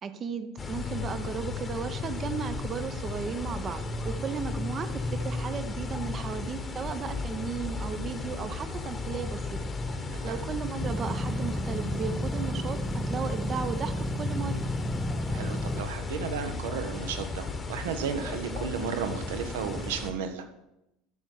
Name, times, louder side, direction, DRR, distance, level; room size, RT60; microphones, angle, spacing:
voice 1, 0.0-9.7 10.2-14.6, right 6 dB, 35° right, 10 dB, 0.9 m, -35 dB
sound 1, 0.6-20.1, left 3 dB, 20° left, 1.2 m, -35 dB
sound 2, 10.8-15.8, equal, ahead, 0.6 m, -32 dB
voice 2, 15.3-20.4, right 7 dB, 65° right, 7 dB, 1.1 m, -34 dB
11.5 x 6.6 x 4.8 m, 0.87 s
figure-of-eight pair, 65°, 0 cm